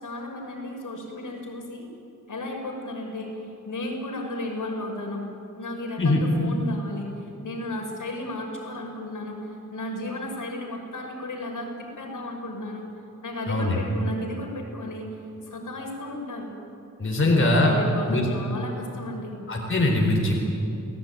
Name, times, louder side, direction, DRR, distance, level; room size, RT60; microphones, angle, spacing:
voice 1, 0.0-1.9 2.3-3.3 3.7-5.2 5.6-7.1 7.4-12.8 13.2-15.1 15.5-16.5 17.2-19.5, left 1 dB, 75° left, 1 dB, 5.8 m, -34 dB
voice 2, 13.5-13.8 17.0-17.7 18.1-18.3 19.5-20.4, left 2 dB, 40° left, -1 dB, 4.1 m, -21 dB
30.0 x 19.0 x 9.5 m, 2.8 s
wide cardioid pair, 155°, 32 cm